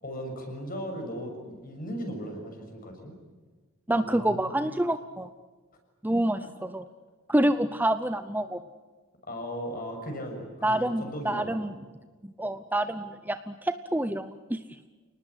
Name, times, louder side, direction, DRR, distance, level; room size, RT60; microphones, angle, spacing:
voice 1, 0.0-3.1 3.9-4.7 6.4-6.5 9.2-11.5, equal, 45° left, 4 dB, 6.8 m, -37 dB
voice 2, 3.9-5.3 6.0-6.8 7.3-8.6 10.6-11.7 12.2-14.6, right 1 dB, 10° right, 10 dB, 0.8 m, -27 dB
29.0 x 19.5 x 9.9 m, 1.4 s
head